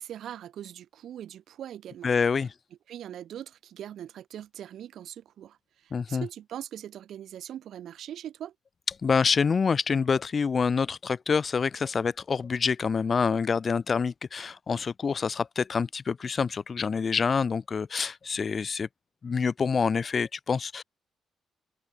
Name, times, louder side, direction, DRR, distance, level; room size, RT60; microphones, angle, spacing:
voice 1, 0.0-2.1 2.9-8.5, right 10 dB, 70° right, 0.5 m, -41 dB
voice 2, 2.0-2.5 5.9-6.3 9.0-18.9 19.2-20.8, left 5 dB, 45° left, 0.3 m, -26 dB
hypercardioid pair, 45°, 0 cm